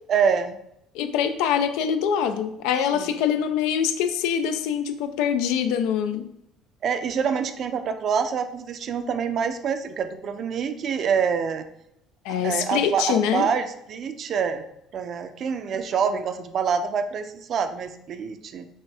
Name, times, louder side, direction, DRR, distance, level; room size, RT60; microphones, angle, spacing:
voice 1, 0.1-0.6 2.9-3.2 6.8-11.6 12.3-14.6 14.9-18.7, right 6 dB, 45° right, 9 dB, 0.4 m, -26 dB
voice 2, 0.9-6.3 12.2-13.5, left 8 dB, 85° left, 9 dB, 0.4 m, -24 dB
6.0 x 2.6 x 3.3 m, 0.80 s
cardioid pair, 125°, 0 cm